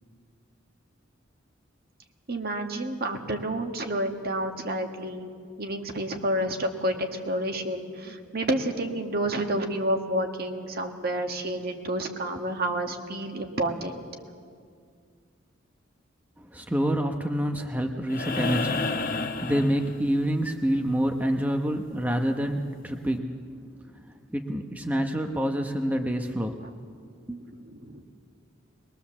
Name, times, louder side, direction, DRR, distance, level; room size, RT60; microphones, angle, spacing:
voice 1, 2.3-5.3 5.6-14.1 26.6-26.7 27.4-28.0, right 1 dB, 50° right, 4 dB, 1.7 m, -30 dB
voice 2, 16.4-23.5 23.9-26.6 27.3-27.4, equal, 10° right, 4 dB, 0.9 m, -27 dB
sound 1, 18.1-20.4 22.3-22.4, left 3 dB, 50° left, 1.1 m, -30 dB
22.0 x 21.0 x 7.3 m, 2.1 s
head